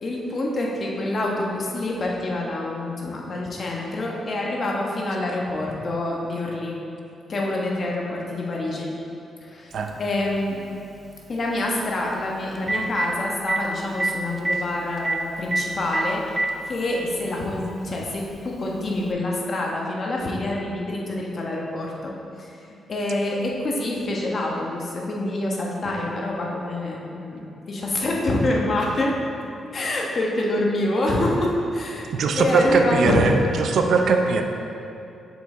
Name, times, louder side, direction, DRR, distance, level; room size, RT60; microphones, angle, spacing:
voice 1, 0.0-6.8 7.3-8.9 9.4-10.6 11.3-29.1 29.7-32.1 32.4-33.3, left 2 dB, 50° left, -2 dB, 1.2 m, -26 dB
Telephone, 9.9-10.0 12.1-12.2 12.5-13.1 13.5-13.6 14.0-14.1 14.4-14.6 15.0-15.2 15.5-15.6 15.9-16.5 17.5-17.6 19.0-19.1, right 2 dB, 25° right, 0.6 m, -23 dB
voice 2, 32.1-33.3 33.6-34.4, right 4 dB, 70° right, 4 dB, 0.5 m, -20 dB
6.7 x 5.4 x 3.8 m, 2.8 s
cardioid pair, 80°, 0 cm